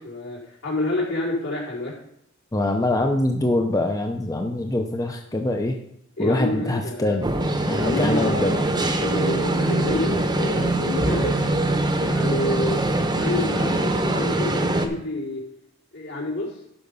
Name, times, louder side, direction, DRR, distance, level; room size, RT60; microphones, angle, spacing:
voice 1, 0.0-1.9 6.2-7.2 7.7-8.6 8.9-11.5 12.0-12.8 13.2-15.4 15.9-16.6, left 2 dB, 70° left, -6 dB, 4.6 m, -28 dB
voice 2, 2.5-5.7 6.2-7.2 7.7-8.5, left 1 dB, 15° left, 3 dB, 0.7 m, -23 dB
sound 1, 7.2-14.9, right 2 dB, 20° right, 0.9 m, -23 dB
11.5 x 5.3 x 5.4 m, 0.75 s
head